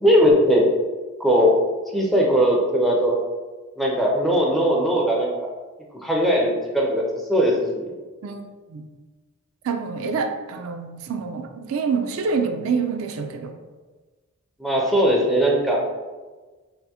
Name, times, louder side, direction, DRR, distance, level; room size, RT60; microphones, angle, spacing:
voice 1, 0.0-0.7 1.2-1.5 1.9-3.2 3.8-5.5 6.0-7.0 7.3-7.9 14.6-15.8, equal, ahead, -2 dB, 0.4 m, -19 dB
voice 2, 8.2-8.9 9.6-13.5, right 5 dB, 70° right, 6 dB, 0.3 m, -27 dB
3.4 x 2.5 x 2.7 m, 1.3 s
head